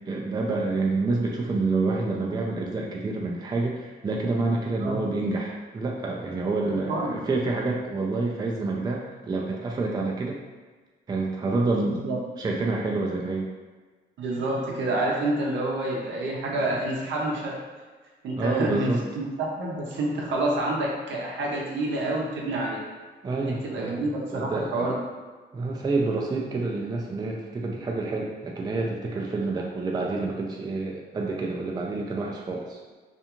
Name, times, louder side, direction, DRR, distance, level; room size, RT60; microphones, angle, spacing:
voice 1, 0.1-10.4 11.1-12.0 12.4-13.5 18.4-19.0 23.2-25.0 25.5-32.8, right 3 dB, 20° right, -1 dB, 0.4 m, -28 dB
voice 2, 6.6-7.2 11.9-12.2 14.2-17.6 18.2-22.8 23.4-25.0, right 2 dB, 70° right, -2 dB, 0.7 m, -28 dB
2.5 x 2.3 x 2.9 m, 1.4 s
cardioid pair, 90°, 20 cm